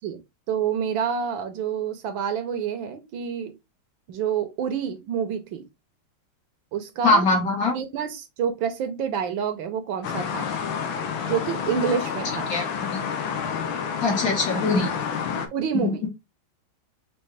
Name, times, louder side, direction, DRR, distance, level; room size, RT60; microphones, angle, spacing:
voice 1, 0.5-3.5 4.1-5.7 6.7-7.2 7.7-10.5 11.3-12.5 15.5-16.0, right 7 dB, 75° right, 1.5 m, -28 dB
voice 2, 7.0-7.7 12.5-12.6 12.9-13.0 14.0-15.0 15.3-15.4 15.8-16.1, left 3 dB, 50° left, 1.6 m, -22 dB
sound 1, 10.0-15.5, left 7 dB, 75° left, 1.6 m, -29 dB
5.4 x 3.0 x 3.2 m
omnidirectional pair, 2.3 m